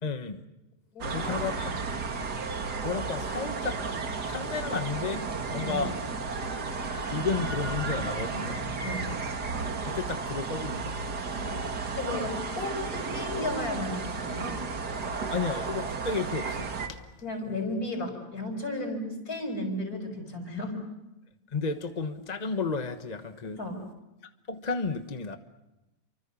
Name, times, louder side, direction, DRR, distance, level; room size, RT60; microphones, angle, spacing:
voice 1, 0.0-0.4 1.1-1.7 2.8-3.8 4.3-5.9 7.1-8.5 9.8-10.9 15.3-17.0 21.5-23.6 24.5-25.4, left 4 dB, 30° left, 7 dB, 1.2 m, -32 dB
voice 2, 0.9-1.3 5.6-5.8 8.0-8.1 8.8-9.1 11.3-11.6 11.9-14.7 17.2-20.8 23.5-23.8, left 2 dB, 65° left, 5 dB, 6.1 m, -34 dB
sound 1, 1.0-16.9, right 4 dB, 85° right, 2.6 m, -33 dB
29.5 x 25.0 x 7.0 m, 0.98 s
omnidirectional pair, 1.7 m